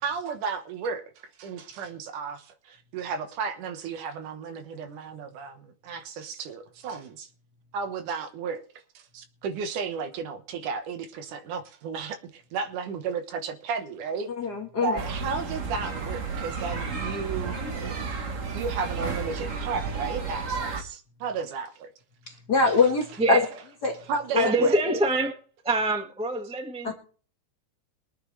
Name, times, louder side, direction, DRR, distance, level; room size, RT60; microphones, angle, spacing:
voice 1, 0.0-7.3 7.7-8.6 8.9-14.3 14.8-17.6 18.5-21.9 24.1-24.7, right 5 dB, 85° right, 2.8 m, -33 dB
voice 2, 14.4-15.0 22.3-23.4 23.8-24.0 24.3-24.5 26.8-26.9, left 4 dB, 45° left, 1.6 m, -23 dB
sound 1, 15.0-20.8, right 4 dB, 65° right, 0.7 m, -32 dB
voice 3, 23.2-23.5 24.3-25.4 25.6-26.9, right 2 dB, 5° right, 0.6 m, -25 dB
23.0 x 9.1 x 3.3 m
omnidirectional pair, 3.5 m